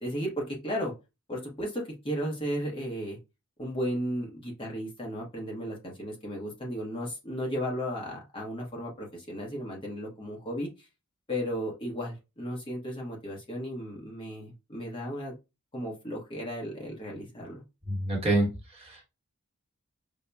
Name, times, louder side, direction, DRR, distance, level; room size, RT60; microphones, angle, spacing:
voice 1, 0.0-0.9 1.3-3.2 3.6-10.9 11.3-15.3 15.7-17.6, equal, 25° left, -1 dB, 0.8 m, -34 dB
voice 2, 17.9-19.0, right 1 dB, 25° right, 0 dB, 0.9 m, -27 dB
5.3 x 2.0 x 2.2 m, 0.26 s
head